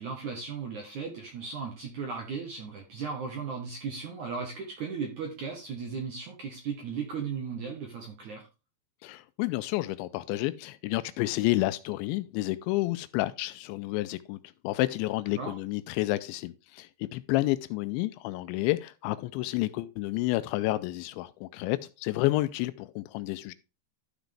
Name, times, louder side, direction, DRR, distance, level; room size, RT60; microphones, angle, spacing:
voice 1, 0.0-8.5 15.4-15.5, right 5 dB, 65° right, 1.9 m, -36 dB
voice 2, 9.0-14.4 14.6-23.5, left 18 dB, 85° left, 2.8 m, -30 dB
12.5 x 6.0 x 3.4 m
omnidirectional pair, 5.4 m